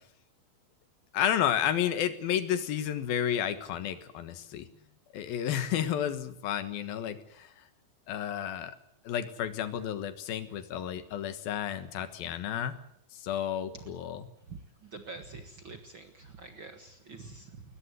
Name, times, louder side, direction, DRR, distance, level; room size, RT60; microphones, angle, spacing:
voice 1, 1.1-4.7 5.1-7.5 8.1-8.8 9.0-12.7 13.1-14.3, left 10 dB, 80° left, 11 dB, 3.3 m, -31 dB
voice 2, 14.5-17.6, right 3 dB, 45° right, 6 dB, 1.7 m, -46 dB
21.5 x 20.5 x 8.2 m, 0.71 s
omnidirectional pair, 4.2 m